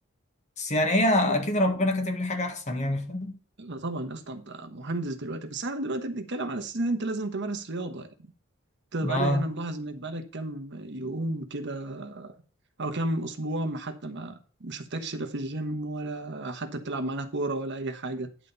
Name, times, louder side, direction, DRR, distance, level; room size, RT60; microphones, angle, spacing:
voice 1, 0.6-3.4 9.0-9.5, left 1 dB, 35° left, 1.6 m, -25 dB
voice 2, 3.6-8.1 8.9-12.4 12.8-18.3, right 2 dB, 60° right, 1.2 m, -32 dB
11.0 x 4.0 x 6.8 m
head